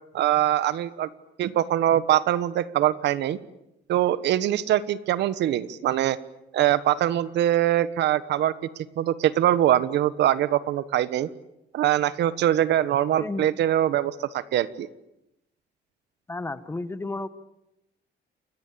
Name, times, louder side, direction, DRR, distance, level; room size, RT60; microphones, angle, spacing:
voice 1, 0.1-1.1 1.4-3.4 3.9-6.2 6.5-8.5 9.0-11.3 11.7-14.9, right 12 dB, 75° right, 15 dB, 1.4 m, -23 dB
voice 2, 13.2-13.5 16.3-17.3, left 2 dB, 15° left, 13 dB, 1.2 m, -32 dB
28.5 x 22.0 x 8.6 m, 0.88 s
cardioid pair, 160°, 18 cm